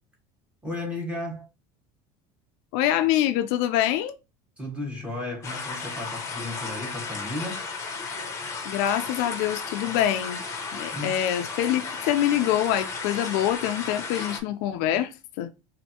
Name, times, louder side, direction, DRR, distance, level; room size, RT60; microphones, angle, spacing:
voice 1, 0.6-1.5 4.6-7.7 10.9-11.1, left 2 dB, 10° right, 1.3 m, -34 dB
voice 2, 2.7-4.2 8.6-10.4 10.7-15.1 15.4-15.5, left 12 dB, 65° left, 0.5 m, -25 dB
sound 1, 5.4-14.4, left 4 dB, 20° left, 0.8 m, -34 dB
4.3 x 2.7 x 2.8 m
cardioid pair, 160°, 14 cm